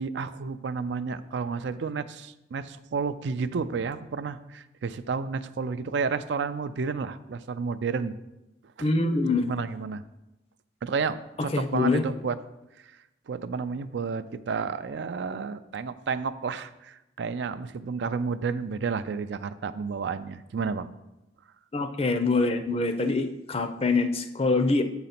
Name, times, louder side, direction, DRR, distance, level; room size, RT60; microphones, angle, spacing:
voice 1, 0.0-8.1 8.8-8.9 9.4-10.0 10.8-12.4 13.3-20.9, right 5 dB, 75° right, 12 dB, 0.4 m, -31 dB
voice 2, 8.8-9.5 11.5-12.0 21.7-24.8, left 3 dB, 35° left, 9 dB, 0.5 m, -24 dB
7.5 x 4.0 x 5.8 m, 0.96 s
head